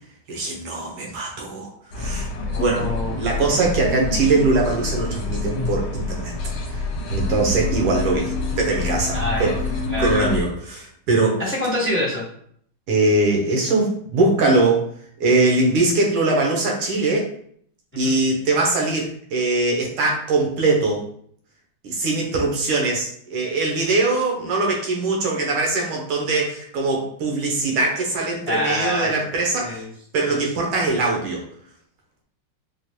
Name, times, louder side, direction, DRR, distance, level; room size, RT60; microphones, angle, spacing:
voice 1, 0.3-1.7 2.0-2.3 2.6-2.9 3.2-6.3 6.7-9.6 10.0-11.4 12.9-14.9 15.2-17.3 18.0-21.0 21.8-29.8 30.1-31.5, right 3 dB, 90° right, -1 dB, 1.7 m, -21 dB
sound 1, 1.9-10.4, left 2 dB, 70° left, 1.5 m, -26 dB
voice 2, 2.5-3.4 9.1-9.6 9.9-10.3 11.4-12.2 18.0-18.1 28.5-29.1 29.6-29.9 30.3-30.4, left 1 dB, 10° left, -6 dB, 0.9 m, -25 dB
4.6 x 2.1 x 2.8 m, 0.63 s
omnidirectional pair, 2.4 m